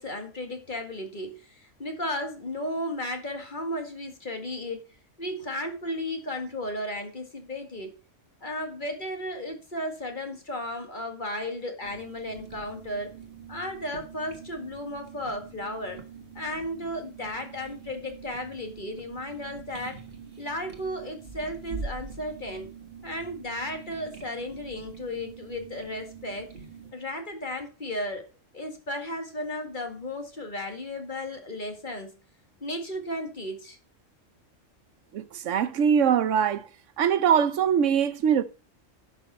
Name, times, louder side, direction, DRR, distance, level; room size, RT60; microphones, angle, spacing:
voice 1, 0.0-4.8 5.2-7.9 8.4-13.1 13.5-16.0 16.4-20.0 20.4-22.7 23.0-26.5 26.9-28.2 28.5-32.2 32.6-33.8, left 1 dB, 40° left, 2.1 m, -34 dB
sound 1, 11.8-26.9, right 5 dB, 50° right, 1.8 m, -44 dB
voice 2, 35.1-36.7 37.0-38.4, right 8 dB, 75° right, 1.1 m, -22 dB
11.0 x 6.6 x 4.3 m
omnidirectional pair, 1.3 m